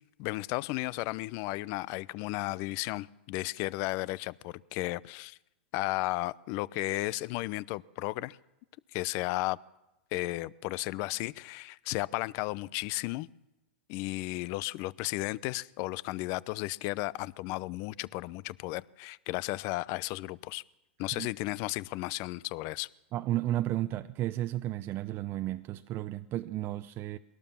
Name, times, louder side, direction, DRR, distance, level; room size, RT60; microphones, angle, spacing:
voice 1, 0.2-5.4 5.7-8.4 8.9-9.6 10.1-13.3 13.9-20.6 21.0-22.9, left 20 dB, 45° left, 0.7 m, -34 dB
voice 2, 23.1-27.2, right 14 dB, 35° right, 0.8 m, -33 dB
22.5 x 18.0 x 7.2 m
hypercardioid pair, 110°, 6 cm